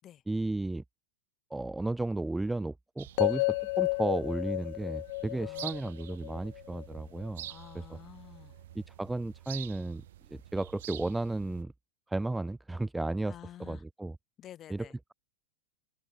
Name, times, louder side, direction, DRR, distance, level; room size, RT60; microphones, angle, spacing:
voice 1, 0.3-0.8 1.5-7.5 7.7-7.8 8.7-10.0 10.3-11.7 12.1-14.2 14.7-15.1, right 2 dB, 5° right, 0.9 m, -34 dB
sound 1, 3.0-11.6, right 14 dB, 55° right, 7.0 m, -48 dB
sound 2, 3.2-7.3, left 26 dB, 50° left, 0.4 m, -32 dB
voice 2, 5.3-5.8 7.5-8.5 13.3-13.8 14.4-14.9, left 11 dB, 30° left, 7.5 m, -50 dB
figure-of-eight pair, 90°, 0 cm